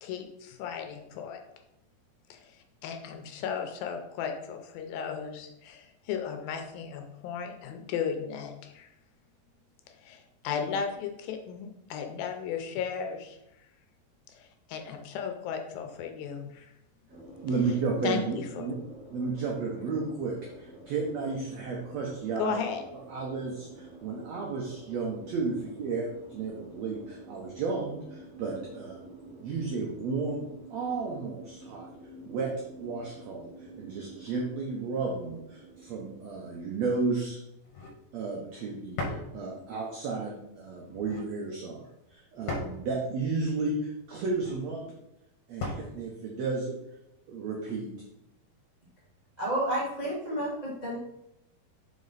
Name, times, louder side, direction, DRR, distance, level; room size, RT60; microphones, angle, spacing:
voice 1, 0.0-1.4 2.3-2.6 2.8-8.9 10.0-13.4 14.3-16.7 18.0-18.6 22.4-22.8, left 7 dB, 80° left, 5 dB, 2.4 m, -35 dB
sound 1, 17.1-37.0, right 2 dB, 30° right, 1.3 m, -49 dB
voice 2, 17.4-18.8 19.1-22.6 23.1-29.0 29.4-31.9 32.2-32.5 32.8-37.4 38.1-44.8 45.5-46.7 47.3-47.9, right 4 dB, 85° right, -1 dB, 1.5 m, -33 dB
sound 2, 37.6-38.0 39.0-39.3 40.8-41.3 42.5-42.8 44.2-44.6 45.6-45.9, left 2 dB, 65° left, 2.1 m, -36 dB
voice 3, 49.4-51.0, right 1 dB, 55° right, -8 dB, 0.4 m, -30 dB
5.4 x 5.2 x 4.0 m, 0.84 s
omnidirectional pair, 4.3 m